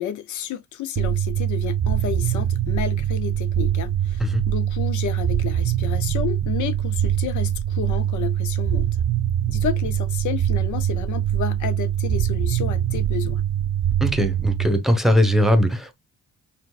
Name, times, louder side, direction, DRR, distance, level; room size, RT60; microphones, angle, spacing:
voice 1, 0.0-8.9 9.5-13.4, left 10 dB, 75° left, 0.6 m, -31 dB
sound 1, 1.0-14.7, right 10 dB, 45° right, 0.4 m, -23 dB
voice 2, 14.0-15.9, equal, ahead, 1.0 m, -19 dB
4.5 x 3.5 x 2.4 m
cardioid pair, 90°, 30 cm